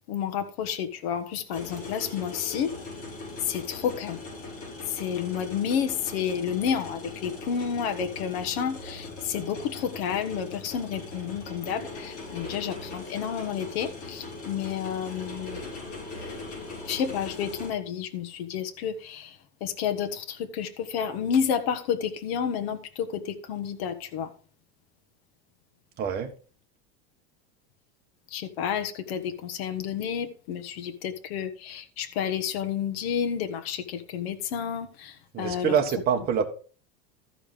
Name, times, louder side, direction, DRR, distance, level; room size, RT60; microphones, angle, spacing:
voice 1, 0.1-2.7 3.4-4.3 4.9-15.7 16.9-24.3 28.3-35.7, left 8 dB, 70° left, 1.3 m, -30 dB
sound 1, 1.5-17.7, left 2 dB, 45° left, 4.9 m, -40 dB
voice 2, 26.0-26.3 35.3-36.5, right 7 dB, 30° right, 1.4 m, -25 dB
13.5 x 5.2 x 4.9 m
supercardioid pair, 170°, 32 cm